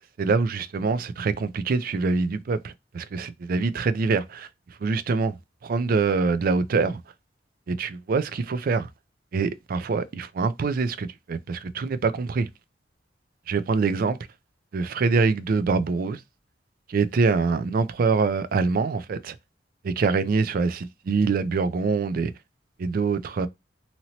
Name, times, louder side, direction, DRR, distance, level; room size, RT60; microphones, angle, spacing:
voice 1, 0.2-4.5 4.8-5.4 5.6-7.0 7.7-8.9 9.3-12.5 13.5-14.2 14.7-16.2 16.9-19.4 19.8-22.3 22.8-23.5, right 4 dB, 50° right, 0.4 m, -24 dB
2.8 x 2.8 x 2.7 m
head